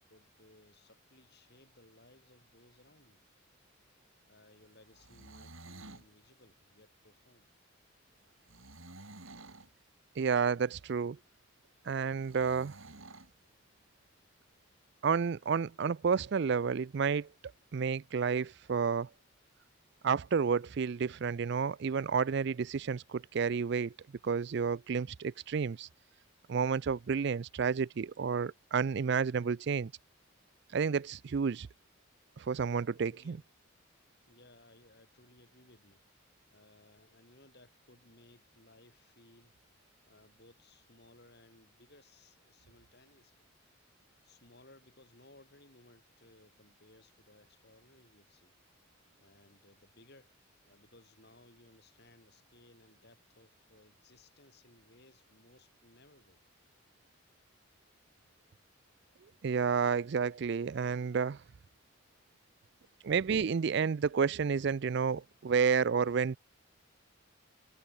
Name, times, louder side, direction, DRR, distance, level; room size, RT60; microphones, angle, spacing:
voice 1, 0.1-3.2 4.3-7.5 33.1-33.4 34.3-36.0 36.5-39.5 40.1-43.4 44.2-48.5 49.2-50.3 50.7-56.4, left 2 dB, 50° left, 7.1 m, -61 dB
sound 1, 4.8-6.1 8.4-9.7 12.2-13.3, right 2 dB, 75° right, 3.7 m, -51 dB
voice 2, 10.2-11.2 11.9-12.8 15.0-17.3 17.7-19.1 20.0-23.9 24.2-25.9 26.5-29.9 30.7-31.7 32.4-33.4 59.4-61.4 63.0-66.4, right 6 dB, 55° right, 0.4 m, -30 dB
head